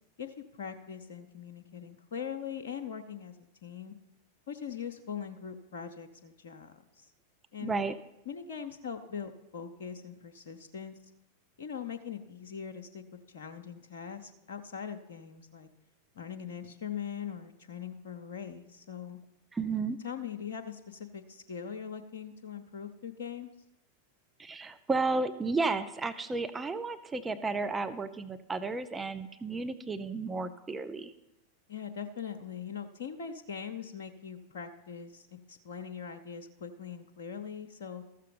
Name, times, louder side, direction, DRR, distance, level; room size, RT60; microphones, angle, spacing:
voice 1, 0.2-3.4 3.6-3.9 4.5-7.1 7.5-7.8 8.3-11.0 11.6-15.7 16.2-19.2 20.0-23.5 31.7-38.0, left 7 dB, 60° left, 6 dB, 0.7 m, -41 dB
voice 2, 7.6-7.9 19.5-20.0 24.4-31.1, right 3 dB, 15° right, 10 dB, 0.5 m, -33 dB
14.0 x 6.7 x 5.2 m, 0.88 s
figure-of-eight pair, 90°, 0 cm